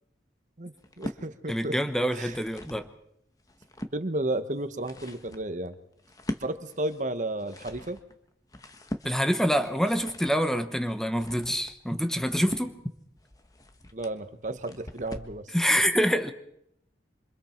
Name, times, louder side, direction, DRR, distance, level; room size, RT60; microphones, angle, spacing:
voice 1, 0.6-1.8 2.1-2.4 3.9-5.7 6.4-8.0 13.9-15.5, right 1 dB, 45° right, 1.2 m, -33 dB
sound 1, 0.8-1.2 2.0-2.9 3.3-4.0 4.6-15.4, equal, 20° left, 1.4 m, -41 dB
voice 2, 1.5-2.9 9.0-12.7 15.5-16.3, equal, 5° left, 0.9 m, -26 dB
27.0 x 25.5 x 4.5 m
head